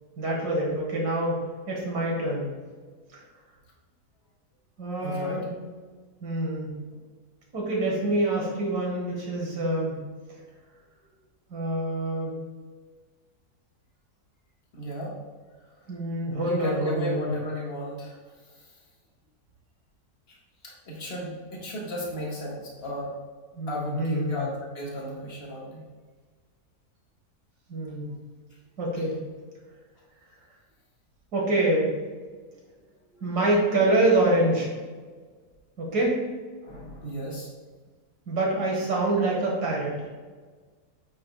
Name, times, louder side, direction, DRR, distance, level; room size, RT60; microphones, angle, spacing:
voice 1, 0.2-2.5 3.1-3.2 4.8-5.5 6.2-6.8 7.5-10.0 11.5-12.4 15.9-17.3 23.6-24.5 27.7-28.1 28.8-29.2 31.3-31.9 33.2-34.7 35.8-36.2 38.3-40.0, right 1 dB, 85° right, -3 dB, 2.2 m, -26 dB
voice 2, 5.0-5.4 14.7-15.1 16.4-18.2 20.3-20.4 20.6-23.1 23.7-25.8 33.1-33.2 36.6-37.5, equal, 40° left, -4 dB, 1.8 m, -34 dB
8.6 x 6.0 x 2.3 m, 1.5 s
omnidirectional pair, 1.7 m